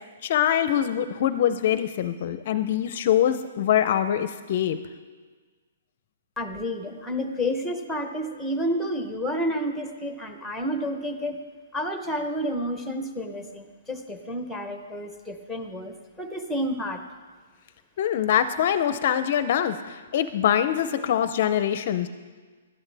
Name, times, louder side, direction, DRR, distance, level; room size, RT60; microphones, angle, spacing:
voice 1, 0.0-4.8 18.0-22.1, left 10 dB, 40° left, 12 dB, 0.5 m, -24 dB
voice 2, 6.4-11.4 11.7-17.0, equal, ahead, 6 dB, 0.9 m, -30 dB
18.0 x 12.5 x 3.4 m, 1.4 s
hypercardioid pair, 170°, 0 cm